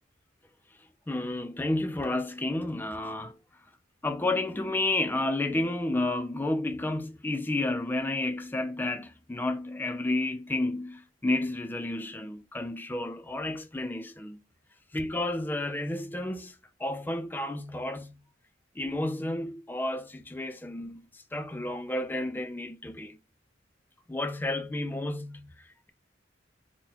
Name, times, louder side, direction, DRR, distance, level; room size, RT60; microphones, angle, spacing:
voice 1, 1.1-3.4 4.0-14.4 14.9-18.2 18.8-23.2 24.1-25.9, left 2 dB, 10° left, 0.3 m, -31 dB
3.8 x 2.0 x 2.8 m
head